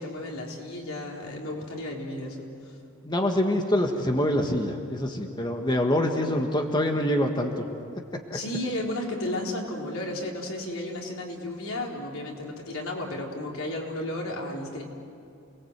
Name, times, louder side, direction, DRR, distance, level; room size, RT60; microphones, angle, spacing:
voice 1, 0.0-2.8 8.3-14.8, left 1 dB, 85° left, -1 dB, 4.1 m, -33 dB
voice 2, 3.0-7.6 8.1-8.4, left 1 dB, 20° left, 3 dB, 1.5 m, -25 dB
29.0 x 20.0 x 8.1 m, 2.5 s
head